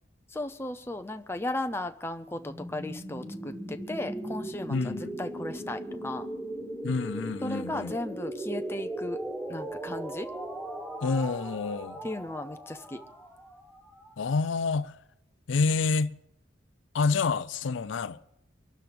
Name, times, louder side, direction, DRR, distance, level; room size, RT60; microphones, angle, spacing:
voice 1, 0.3-6.3 7.4-9.2 9.5-10.3 12.0-13.0, left 1 dB, 15° left, 0.6 m, -35 dB
sound 1, 2.3-14.1, right 1 dB, 10° right, 5.7 m, -38 dB
voice 2, 4.7-5.2 6.8-7.9 11.0-12.0 14.2-14.9 15.5-16.1 16.9-18.3, left 4 dB, 85° left, 0.5 m, -28 dB
24.0 x 12.0 x 3.4 m
head